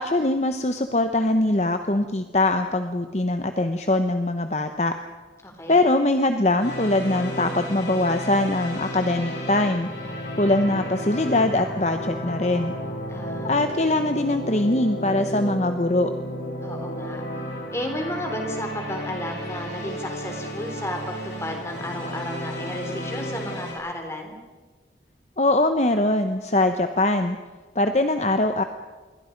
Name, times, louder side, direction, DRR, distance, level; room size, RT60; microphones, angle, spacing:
voice 1, 0.0-4.9 5.7-9.9 10.4-12.7 13.4-16.1 25.4-27.4 27.7-28.6, left 2 dB, 40° left, 7 dB, 1.0 m, -22 dB
voice 2, 5.4-5.9 13.1-13.8 16.6-17.2 17.7-24.4, left 1 dB, 15° left, 4 dB, 3.6 m, -33 dB
sound 1, 6.6-23.7, equal, 75° left, 7.9 m, -33 dB
27.5 x 22.5 x 5.3 m, 1.3 s
head